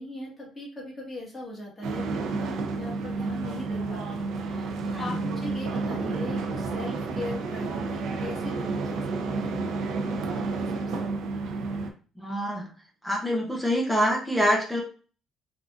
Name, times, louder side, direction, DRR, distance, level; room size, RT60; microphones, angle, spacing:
voice 1, 0.0-9.6 10.3-10.9, left 1 dB, 15° left, -4 dB, 1.4 m, -40 dB
sound 1, 1.8-11.9, right 3 dB, 75° right, 0.5 m, -30 dB
voice 2, 4.9-5.4 12.2-12.7 13.0-14.8, equal, ahead, -1 dB, 0.5 m, -26 dB
3.5 x 2.4 x 2.4 m, 0.38 s
cardioid pair, 135°, 0 cm